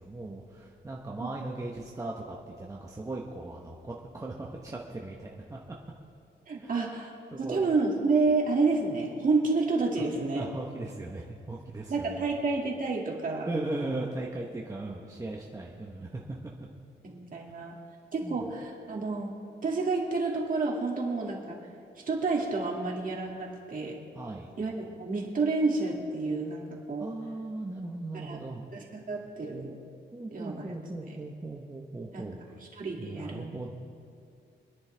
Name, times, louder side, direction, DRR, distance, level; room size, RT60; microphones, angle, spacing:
voice 1, 0.0-5.6 6.6-6.8 7.3-7.7 10.4-12.3 13.4-16.2 18.2-18.5 24.1-24.5 27.0-28.6 30.1-32.4 33.0-33.7, right 2 dB, 15° right, -2 dB, 1.0 m, -38 dB
voice 2, 6.5-7.1 7.4-10.5 11.9-13.5 17.0-17.8 18.1-19.3 19.6-21.6 22.1-24.0 24.6-27.1 28.2-28.4 28.7-29.8 30.3-30.6 31.1-31.2 32.1-32.3 32.8-33.6, right 3 dB, 45° right, -1 dB, 2.2 m, -29 dB
25.5 x 10.5 x 3.4 m, 2.4 s
wide cardioid pair, 145°, 19 cm